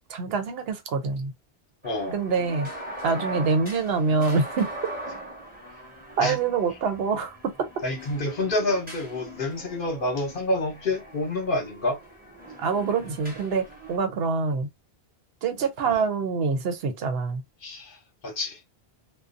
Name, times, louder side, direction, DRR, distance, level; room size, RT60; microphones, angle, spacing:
voice 1, 0.1-1.3 2.1-2.7 3.0-4.7 6.2-7.5 12.6-14.7 15.4-17.4, right 4 dB, 75° right, 0.8 m, -25 dB
voice 2, 1.8-2.2 6.2-6.4 7.8-12.0 15.9-16.0 17.6-18.0 18.2-18.6, left 2 dB, 60° left, 1.0 m, -28 dB
sound 1, 1.8-14.0, right 1 dB, 10° right, 0.9 m, -41 dB
2.4 x 2.2 x 2.5 m
omnidirectional pair, 1.1 m